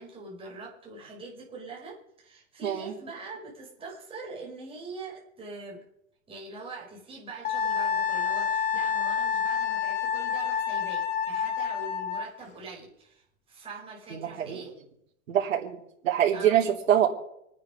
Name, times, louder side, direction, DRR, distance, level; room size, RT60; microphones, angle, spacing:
voice 1, 0.0-5.8 6.3-14.8 16.3-16.6, right 3 dB, 15° right, -2 dB, 4.9 m, -43 dB
voice 2, 2.6-2.9 14.1-14.6 15.3-15.8 16.0-17.1, right 10 dB, 75° right, -2 dB, 3.5 m, -24 dB
Wind instrument woodwind instrument, 7.4-12.3, left 7 dB, 20° left, 1.1 m, -28 dB
26.5 x 9.6 x 5.1 m, 0.77 s
supercardioid pair, 155°, 40 cm